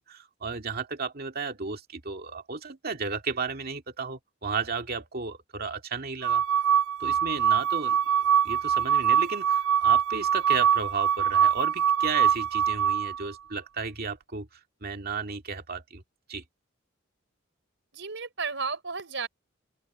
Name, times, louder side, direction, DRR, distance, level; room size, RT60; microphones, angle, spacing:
voice 1, 0.0-6.4 7.0-8.0 8.4-16.0 16.3-16.4, right 4 dB, 50° right, 2.2 m, -34 dB
sound 1, 6.2-13.2, right 8 dB, 90° right, 0.5 m, -24 dB
voice 2, 17.9-19.3, right 5 dB, 65° right, 5.3 m, -33 dB
open air
head